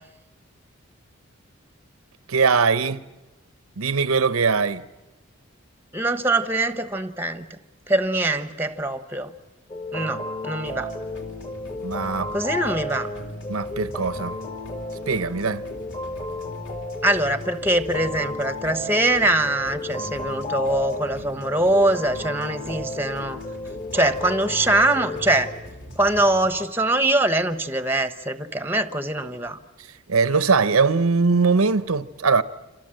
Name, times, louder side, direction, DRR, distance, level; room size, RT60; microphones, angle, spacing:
voice 1, 2.3-3.0 3.8-4.8 11.8-12.3 13.5-14.4 15.1-15.6 30.1-32.4, right 4 dB, 85° right, 0.8 m, -21 dB
voice 2, 5.9-7.6 7.9-9.3 9.9-10.9 12.3-13.1 17.0-23.4 23.9-25.5 26.0-29.6, right 1 dB, 10° right, 0.9 m, -23 dB
sound 1, 9.7-25.5, left 2 dB, 30° left, 1.7 m, -33 dB
sound 2, 10.7-26.6, equal, 55° left, 3.4 m, -42 dB
27.5 x 27.0 x 7.7 m
head